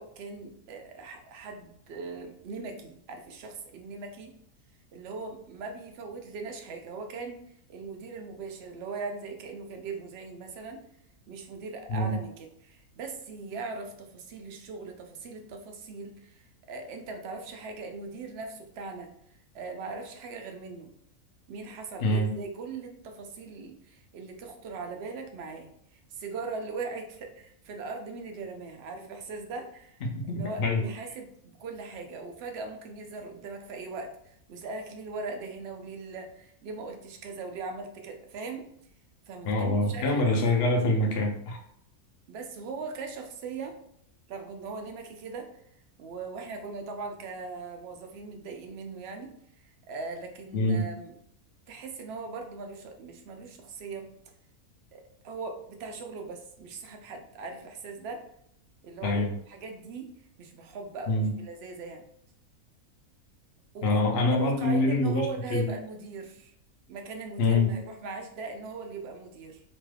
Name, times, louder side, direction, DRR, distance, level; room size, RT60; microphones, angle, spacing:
voice 1, 0.0-4.3 4.9-7.4 7.7-10.8 11.3-19.1 19.5-20.9 21.5-30.0 30.3-38.7 39.3-40.5 42.3-43.8 44.3-45.5 46.0-49.3 49.6-51.1 51.7-54.1 54.9-58.3 58.8-60.1 60.4-62.0 63.7-64.0 64.3-66.5 66.9-69.6, right 4 dB, 65° right, 4 dB, 0.6 m, -40 dB
voice 2, 22.0-22.3 30.0-30.8 39.4-41.6 50.5-50.9 59.0-59.3 61.1-61.3 63.8-65.7 67.4-67.7, left 2 dB, 55° left, 1 dB, 0.7 m, -25 dB
3.0 x 2.3 x 3.2 m, 0.70 s
omnidirectional pair, 1.6 m